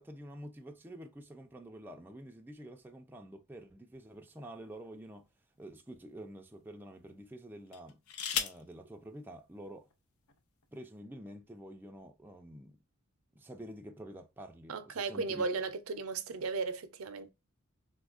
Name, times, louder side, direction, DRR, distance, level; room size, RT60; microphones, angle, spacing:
voice 1, 0.0-5.3 5.6-8.0 8.3-9.9 10.7-12.8 13.3-15.4, right 1 dB, 10° right, 0.4 m, -48 dB
sound 1, 3.9-5.2 5.9-6.0 7.7-8.7 9.9-10.0 10.3-10.7, left 7 dB, 90° left, 0.5 m, -38 dB
voice 2, 14.7-17.3, right 4 dB, 80° right, 0.5 m, -35 dB
4.1 x 2.3 x 2.4 m
head